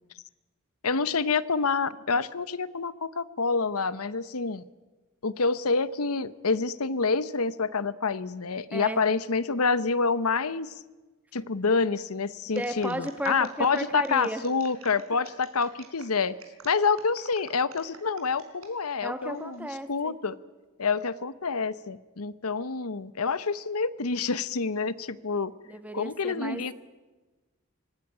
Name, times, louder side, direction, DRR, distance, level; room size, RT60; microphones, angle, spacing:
voice 1, 0.8-4.6 5.2-10.7 11.3-16.4 16.6-20.4 20.8-25.5 25.9-26.7, left 4 dB, 90° left, 16 dB, 0.9 m, -27 dB
voice 2, 8.7-9.0 12.5-14.4 19.0-20.1 25.6-26.6, right 1 dB, 5° right, 9 dB, 1.5 m, -34 dB
sound 1, 12.5-18.7 19.2-19.6, right 6 dB, 75° right, 4.8 m, -50 dB
25.0 x 19.5 x 10.0 m, 1.2 s
head